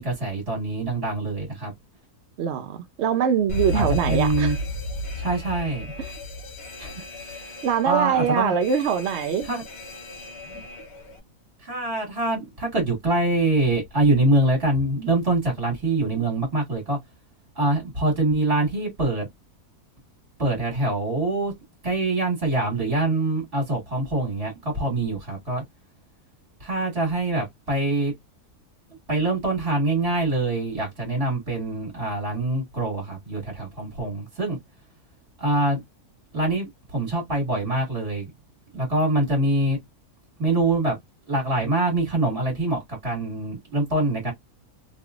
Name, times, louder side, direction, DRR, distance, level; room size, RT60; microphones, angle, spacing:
voice 1, 0.0-1.7 3.7-4.6 5.2-5.9 6.8-7.6 7.8-8.5 9.5-9.6 10.5-10.6 11.6-17.0 17.6-19.3 20.4-21.5 21.8-25.6 26.6-28.1 29.1-34.6 35.4-35.8 36.3-38.3 38.7-39.8 40.4-41.0 41.3-44.3, right 2 dB, 40° right, 1.8 m, -24 dB
voice 2, 2.4-4.6 6.0-6.1 7.6-9.5, right 8 dB, 70° right, 0.7 m, -23 dB
Alarm, 3.5-11.2, left 2 dB, 50° left, 1.0 m, -33 dB
3.0 x 3.0 x 2.4 m
omnidirectional pair, 1.6 m